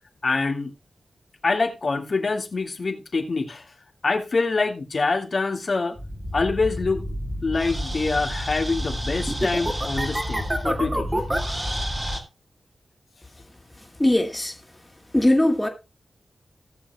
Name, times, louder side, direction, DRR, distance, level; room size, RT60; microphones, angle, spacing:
voice 1, 0.2-0.7 1.4-3.6 4.0-6.0 6.3-7.1 7.4-11.1, left 3 dB, 50° left, 2.1 m, -25 dB
sound 1, 6.0-12.2, equal, 15° right, 2.2 m, -28 dB
voice 2, 14.0-14.5 15.1-15.7, left 1 dB, 10° left, 2.3 m, -19 dB
18.0 x 7.0 x 2.4 m
wide cardioid pair, 100°, 0 cm